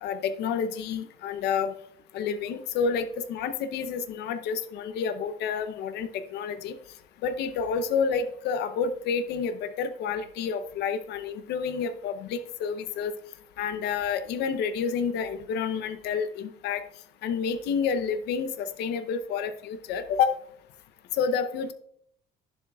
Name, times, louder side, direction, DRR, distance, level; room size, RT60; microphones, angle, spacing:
voice 1, 0.0-1.7 2.1-6.8 7.2-13.1 13.6-16.8 17.2-20.4 21.2-21.7, left 6 dB, 80° left, 10 dB, 0.7 m, -29 dB
11.0 x 7.3 x 2.3 m, 0.65 s
cardioid pair, 110°, 17 cm